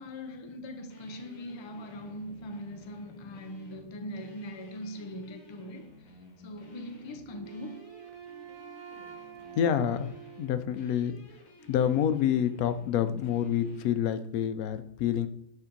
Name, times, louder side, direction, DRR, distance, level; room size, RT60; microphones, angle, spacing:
voice 1, 0.0-5.9 6.4-7.9, left 1 dB, 30° left, 0.5 m, -41 dB
sound 1, 0.9-14.0, left 3 dB, 70° left, 1.6 m, -54 dB
Wind instrument woodwind instrument, 7.3-11.2, right 9 dB, 75° right, 1.2 m, -47 dB
voice 2, 9.5-10.1 10.4-11.2 11.7-15.3, left 9 dB, 90° left, 1.1 m, -27 dB
7.2 x 3.5 x 5.2 m
omnidirectional pair, 1.5 m